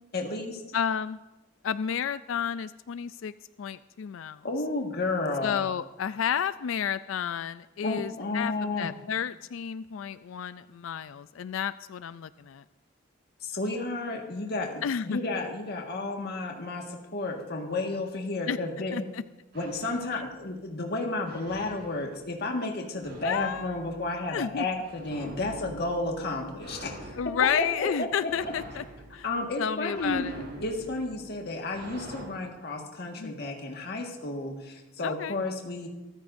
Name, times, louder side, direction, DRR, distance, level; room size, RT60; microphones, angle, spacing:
voice 1, 0.1-0.6 4.4-5.6 7.8-8.9 13.4-19.0 19.5-28.3 29.2-30.2 30.5-35.9, left 2 dB, 55° left, 1 dB, 1.7 m, -32 dB
voice 2, 0.7-1.2 1.6-3.3 3.6-4.4 5.4-12.6 14.8-15.2 18.5-18.6 18.9-19.2 23.2-23.7 24.3-24.6 27.2-28.8 29.1-29.3 29.6-30.4 33.2-33.3 35.0-35.4, left 8 dB, 85° left, 14 dB, 0.4 m, -31 dB
sound 1, 19.5-20.7 21.2-22.5 23.0-32.2, right 1 dB, 55° right, 4.1 m, -46 dB
24.0 x 14.0 x 2.6 m, 1.0 s
head